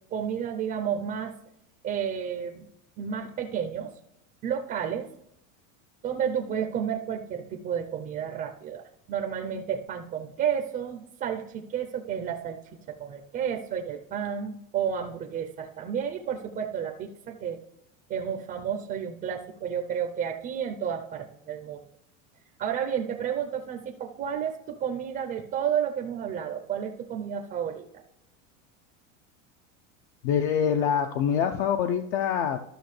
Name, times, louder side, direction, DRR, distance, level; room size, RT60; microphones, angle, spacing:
voice 1, 0.1-1.3 1.8-2.6 3.0-3.9 4.4-5.1 6.0-12.6 12.9-17.6 18.1-21.9 22.6-27.8, right 8 dB, 25° right, 4 dB, 0.5 m, -31 dB
voice 2, 30.2-32.6, left 8 dB, 55° left, 6 dB, 0.7 m, -25 dB
13.0 x 6.1 x 3.2 m, 0.82 s
supercardioid pair, 160°, 38 cm